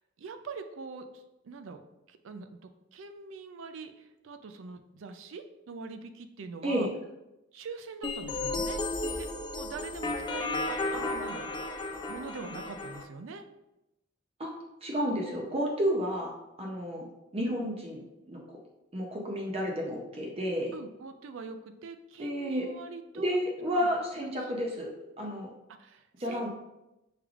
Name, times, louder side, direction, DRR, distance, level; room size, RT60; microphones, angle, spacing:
voice 1, 0.0-1.8 2.1-6.9 7.5-8.8 9.1-9.3 9.5-11.5 12.1-13.5 20.7-23.4 23.7-23.9 24.2-24.5 25.8-26.5, right 4 dB, 80° right, 8 dB, 0.4 m, -43 dB
sound 1, 8.0-13.0, left 2 dB, 25° left, 0.3 m, -33 dB
voice 2, 14.8-16.3 16.6-17.1 17.3-18.6 18.9-20.7 22.2-22.7 23.1-24.9 25.2-25.5 26.2-26.5, equal, 30° right, -1 dB, 0.6 m, -31 dB
6.1 x 3.3 x 2.4 m, 0.94 s
head